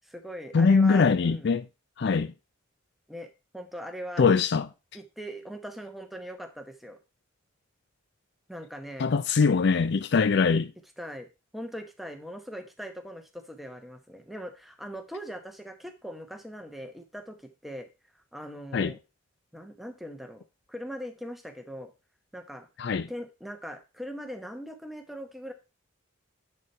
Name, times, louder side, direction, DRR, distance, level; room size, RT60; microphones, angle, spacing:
voice 1, 0.0-1.5 2.2-2.3 3.1-4.4 4.9-7.0 8.5-9.1 11.0-11.3 11.5-17.4 17.6-17.9 18.3-19.0 19.5-20.4 20.7-21.9 22.3-22.7 23.1-25.5, equal, ahead, 0.9 m, -40 dB
voice 2, 0.5-1.6 2.0-2.3 4.2-4.7 9.0-10.7 18.7-18.9 22.8-23.1, left 5 dB, 55° left, 0.4 m, -22 dB
10.0 x 4.2 x 4.3 m
head